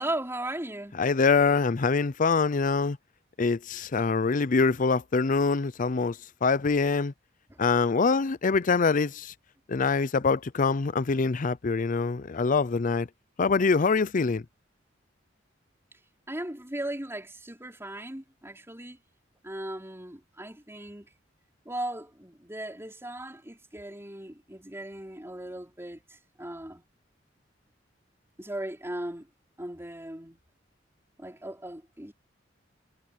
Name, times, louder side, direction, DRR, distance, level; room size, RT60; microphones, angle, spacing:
voice 1, 0.0-1.1 7.5-7.6 16.3-19.0 19.4-21.1 21.6-26.0 26.4-26.8 28.4-29.3 29.6-30.4 31.2-32.1, right 1 dB, 15° right, 5.0 m, -37 dB
voice 2, 1.0-3.0 3.4-7.1 7.6-9.3 9.7-13.1 13.4-14.4, left 4 dB, 45° left, 0.5 m, -24 dB
head